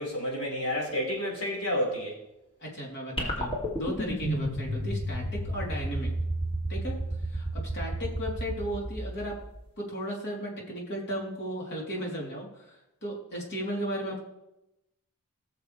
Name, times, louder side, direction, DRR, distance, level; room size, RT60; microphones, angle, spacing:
voice 1, 0.0-2.2, equal, 70° left, -3 dB, 5.0 m, -30 dB
voice 2, 2.6-6.1 6.7-7.0 7.3-9.3 9.8-14.2, equal, 50° left, -2 dB, 3.6 m, -35 dB
sound 1, 3.2-9.7, right 1 dB, 25° left, 2.5 m, -32 dB
19.0 x 7.0 x 3.4 m, 0.88 s
head